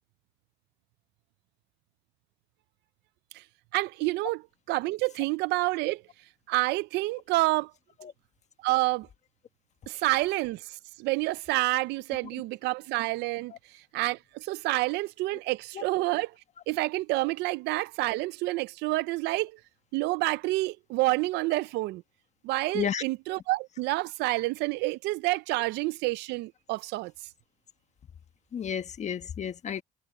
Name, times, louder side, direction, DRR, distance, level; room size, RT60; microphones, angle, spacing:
voice 1, 3.7-4.4 4.7-6.0 6.5-7.7 8.6-9.1 9.9-13.5 13.9-16.3 16.7-19.6 19.9-22.0 22.4-27.1, right 20 dB, 90° right, 0.5 m, -28 dB
voice 2, 28.5-29.8, left 8 dB, 45° left, 1.3 m, -32 dB
cardioid pair, 110°, 17 cm